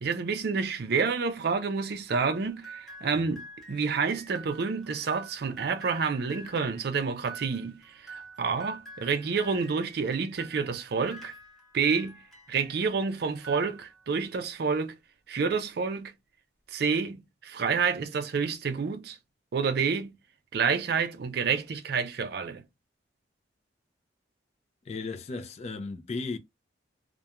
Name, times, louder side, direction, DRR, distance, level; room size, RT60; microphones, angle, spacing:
voice 1, 0.0-11.3 11.7-12.2 12.5-15.0 15.3-16.1 16.7-19.2 19.5-20.1 20.5-22.6, right 5 dB, 55° right, 0.4 m, -29 dB
sound 1, 2.1-12.9 13.3-14.2, right 2 dB, ahead, 0.7 m, -48 dB
voice 2, 24.9-26.4, left 3 dB, 35° left, 0.3 m, -35 dB
2.3 x 2.2 x 2.8 m
head